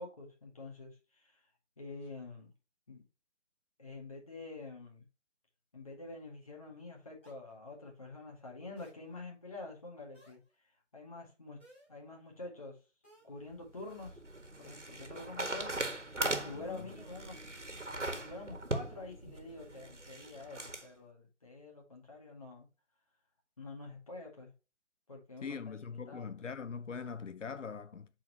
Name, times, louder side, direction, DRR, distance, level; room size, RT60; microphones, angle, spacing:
voice 1, 0.0-1.4 1.8-2.5 2.9-3.0 3.8-5.0 5.7-10.4 10.9-11.6 11.9-12.8 13.2-14.2 14.6-15.8 16.0-17.5 17.9-22.7 23.6-24.5 25.1-25.8 26.1-26.3, left 3 dB, 30° left, 2.0 m, -47 dB
sound 1, 7.2-7.5 8.8-9.1 10.1-10.5 11.6-12.0 13.0-13.4 14.6-14.7 16.1-16.2, right 1 dB, 10° left, 1.6 m, -61 dB
sound 2, 13.5-20.9, right 2 dB, 80° right, 1.7 m, -40 dB
voice 2, 16.5-16.9 25.4-28.1, left 6 dB, 85° left, 0.6 m, -42 dB
8.5 x 4.5 x 2.9 m
figure-of-eight pair, 165°, 36 cm